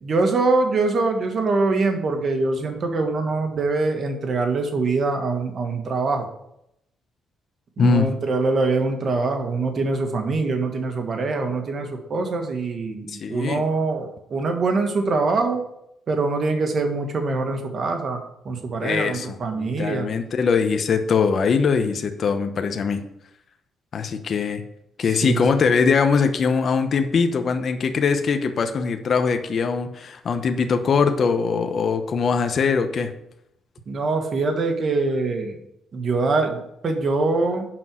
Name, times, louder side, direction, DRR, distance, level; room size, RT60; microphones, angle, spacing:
voice 1, 0.0-6.3 7.8-15.6 16.1-20.1 25.2-25.4 33.9-35.5 35.9-37.7, right 3 dB, 50° right, 4 dB, 1.7 m, -23 dB
voice 2, 7.8-8.1 13.1-13.6 18.8-23.0 23.9-24.6 25.0-33.1, left 5 dB, 50° left, 7 dB, 0.9 m, -22 dB
7.7 x 5.6 x 6.3 m, 0.79 s
cardioid pair, 90°, 0 cm